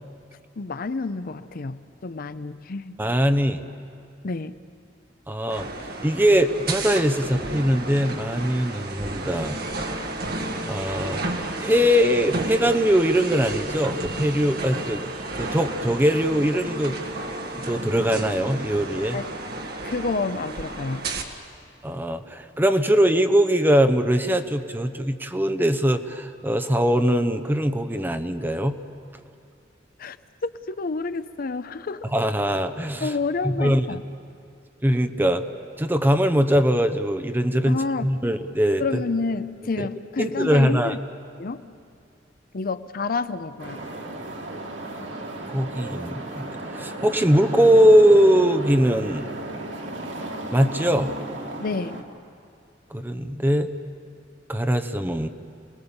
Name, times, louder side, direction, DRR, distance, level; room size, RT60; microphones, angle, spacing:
voice 1, 0.6-3.0 4.2-4.6 19.1-19.3 19.8-21.1 30.0-30.2 30.4-32.1 33.0-34.0 37.7-38.1 38.8-41.0 41.4-41.7 42.5-43.8 51.6-52.0, left 3 dB, 55° left, 13 dB, 0.6 m, -29 dB
voice 2, 3.0-3.6 5.3-5.7 6.0-9.6 10.7-11.2 11.6-15.0 15.4-17.0 17.7-19.2 21.8-28.8 32.1-33.1 33.4-33.9 34.8-35.4 35.8-38.8 39.8-39.9 40.2-41.0 45.5-49.3 50.5-51.1 52.9-53.7 54.5-55.3, equal, 10° right, 8 dB, 0.9 m, -21 dB
sound 1, 5.5-21.2, right 2 dB, 55° right, 1.8 m, -32 dB
sound 2, 43.6-52.0, right 2 dB, 85° right, 2.4 m, -35 dB
29.0 x 19.5 x 7.1 m, 2.4 s
head